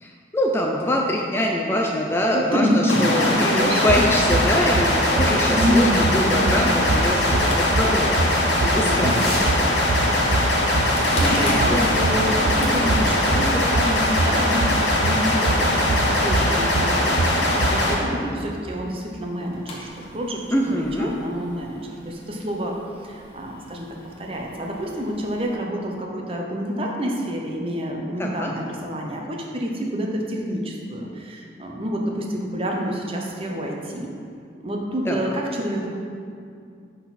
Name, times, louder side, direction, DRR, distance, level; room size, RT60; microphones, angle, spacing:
voice 1, 0.0-9.2 9.6-9.7 11.7-11.8 20.5-21.1 28.2-28.5 35.1-35.4, left 1 dB, 15° left, 0 dB, 0.4 m, -24 dB
voice 2, 2.3-3.9 5.5-6.7 8.7-9.4 10.7-22.8 23.0-34.1 34.6-35.9, equal, 30° right, 0 dB, 0.8 m, -27 dB
sound 1, 2.9-17.9, left 1 dB, 85° left, 1.3 m, -21 dB
sound 2, 3.9-17.8, right 2 dB, 65° right, 0.5 m, -26 dB
sound 3, 7.1-25.5, left 1 dB, 35° left, 1.1 m, -36 dB
10.5 x 4.0 x 4.2 m, 2.3 s
head